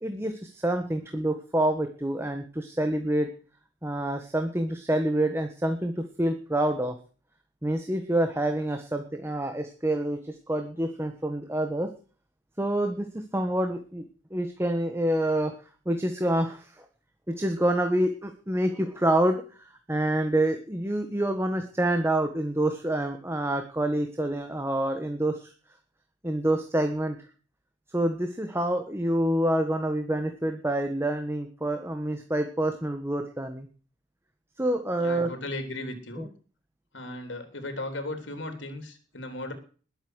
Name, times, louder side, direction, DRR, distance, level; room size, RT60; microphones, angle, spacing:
voice 1, 0.0-3.3 3.8-7.0 7.6-11.9 12.6-14.0 14.3-15.5 15.8-16.9 17.3-25.5 26.2-27.2 27.9-33.7 34.6-35.3 36.2-36.3, right 1 dB, 15° right, 6 dB, 1.4 m, -27 dB
voice 2, 35.0-36.3 36.9-39.5, left 2 dB, 65° left, 7 dB, 3.6 m, -36 dB
20.5 x 8.3 x 6.4 m, 0.40 s
head